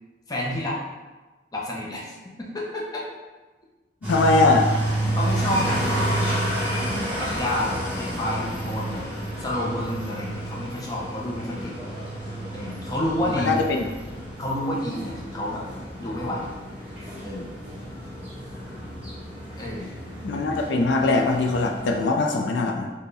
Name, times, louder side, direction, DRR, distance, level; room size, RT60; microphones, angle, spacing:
voice 1, 0.3-0.8 1.5-3.1 5.2-6.0 7.2-9.0 9.4-11.8 12.5-13.6 14.4-15.6 16.0-16.5 17.2-17.5 19.6-20.0, left 1 dB, 20° left, -4 dB, 0.6 m, -29 dB
sound 1, 4.0-22.0, right 1 dB, 10° right, 1.0 m, -30 dB
voice 2, 4.1-4.7 13.3-13.8 20.2-22.9, left 3 dB, 80° left, 2 dB, 0.4 m, -21 dB
4.1 x 2.2 x 3.3 m, 1.2 s
head